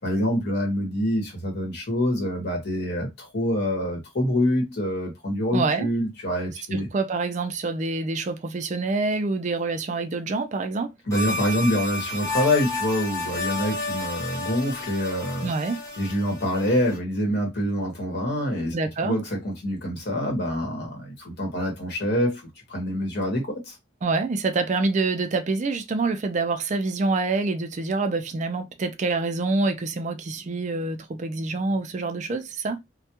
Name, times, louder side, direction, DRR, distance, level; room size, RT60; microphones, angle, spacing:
voice 1, 0.0-6.9 11.1-15.5 16.0-18.7 19.0-23.8, left 1 dB, 60° left, 1.0 m, -26 dB
voice 2, 5.5-5.9 6.7-10.9 15.4-15.8 18.7-19.2 24.0-32.8, right 3 dB, 40° right, 0.4 m, -26 dB
sound 1, 11.1-17.0, left 2 dB, 15° left, 0.7 m, -32 dB
2.2 x 2.1 x 2.8 m
head